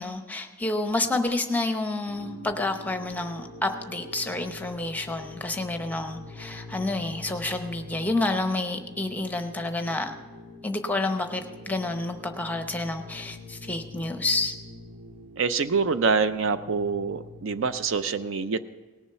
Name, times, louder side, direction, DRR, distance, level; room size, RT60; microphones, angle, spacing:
voice 1, 0.0-10.1 10.6-14.5, left 2 dB, 5° left, 6 dB, 0.7 m, -29 dB
sound 1, 2.1-18.0, left 2 dB, 85° right, 4.8 m, -45 dB
voice 2, 15.4-18.6, right 5 dB, 60° right, 12 dB, 0.5 m, -25 dB
18.5 x 7.2 x 5.5 m, 1.3 s
head